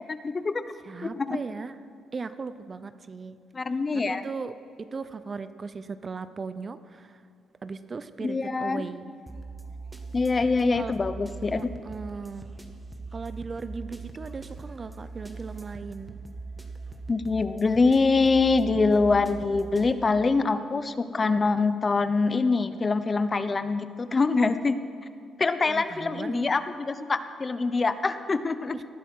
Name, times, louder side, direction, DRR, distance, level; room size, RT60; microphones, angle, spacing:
voice 1, 0.1-0.6 1.0-1.4 3.5-4.2 8.2-8.9 10.1-11.7 17.1-24.8 25.4-28.7, left 4 dB, 30° left, 12 dB, 0.8 m, -24 dB
voice 2, 0.9-1.8 2.1-3.4 3.9-7.2 7.6-9.1 10.7-10.9 11.5-12.5 13.1-16.2 25.6-26.5 28.7-28.8, right 4 dB, 35° right, 13 dB, 0.6 m, -37 dB
sound 1, 9.3-19.9, right 3 dB, 15° right, 1.5 m, -41 dB
18.5 x 11.0 x 5.5 m, 2.5 s
cardioid pair, 90°, 0 cm